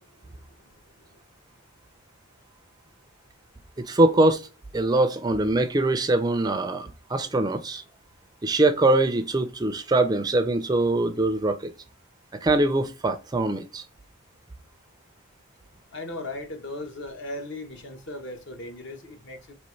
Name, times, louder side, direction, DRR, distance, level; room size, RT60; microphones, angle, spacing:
voice 1, 3.8-4.5 4.7-7.8 8.4-11.7 12.4-13.8, right 2 dB, 20° right, 0.4 m, -23 dB
voice 2, 15.9-19.5, left 2 dB, 55° left, 0.9 m, -37 dB
5.3 x 3.0 x 3.1 m
head